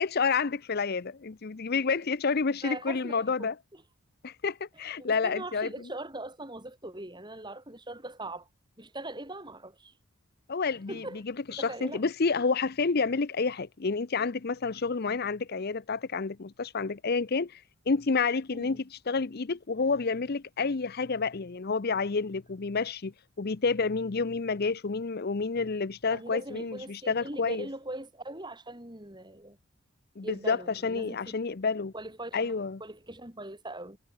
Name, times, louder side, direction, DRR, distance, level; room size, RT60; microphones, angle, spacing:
voice 1, 0.0-3.5 4.2-5.7 10.5-11.0 11.5-23.1 23.4-27.7 30.2-31.9 32.3-32.8, left 4 dB, 45° left, 0.6 m, -29 dB
voice 2, 2.6-3.8 5.0-8.5 8.8-9.9 10.9-11.2 11.5-12.0 18.5-18.8 26.1-29.6 30.2-31.3 31.9-32.5 32.8-34.0, right 1 dB, 20° right, 4.6 m, -41 dB
head